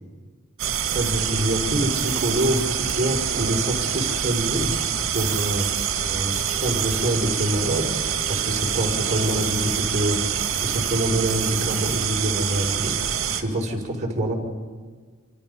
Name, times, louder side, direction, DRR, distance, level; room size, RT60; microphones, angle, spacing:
sound 1, 0.6-13.4, right 8 dB, 70° right, 2.3 m, -26 dB
voice 1, 0.9-4.7 5.1-5.7 6.1-6.3 6.6-7.9 8.3-10.2 10.6-14.3, right 1 dB, 35° right, -1 dB, 5.2 m, -25 dB
28.0 x 28.0 x 5.6 m, 1.5 s
head